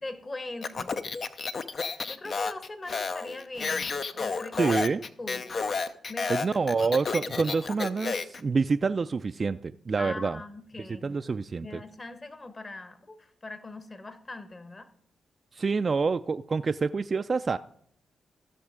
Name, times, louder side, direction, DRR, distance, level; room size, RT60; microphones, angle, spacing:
voice 1, 0.0-1.0 2.1-4.8 5.2-5.4 6.1-6.4 10.0-11.2 11.6-14.9, left 2 dB, 35° left, 10 dB, 1.3 m, -41 dB
Speech, 0.6-8.4, left 4 dB, 55° left, 0.6 m, -31 dB
voice 2, 4.6-5.0 6.3-10.4 10.9-11.8 15.5-17.6, right 4 dB, 45° right, 9 dB, 0.3 m, -27 dB
15.0 x 6.2 x 3.7 m, 0.64 s
supercardioid pair, 45°, 0 cm